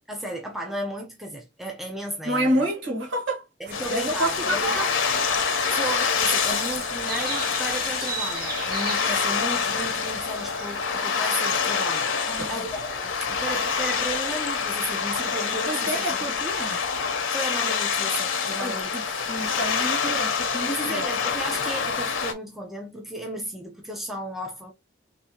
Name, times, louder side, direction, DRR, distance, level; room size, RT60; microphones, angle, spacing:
voice 1, 0.1-2.6 3.6-4.9 5.7-16.3 17.3-19.1 19.8-20.2 20.7-24.7, right 1 dB, ahead, 0.6 m, -34 dB
voice 2, 2.2-3.4 3.9-4.9 12.3-12.7 15.6-16.8 18.6-19.0 19.3-21.0, right 1 dB, 80° right, 1.7 m, -28 dB
sound 1, 3.6-11.0, right 5 dB, 50° right, 0.7 m, -37 dB
sound 2, 3.7-22.3, left 6 dB, 85° left, 0.8 m, -26 dB
3.9 x 2.7 x 2.9 m
head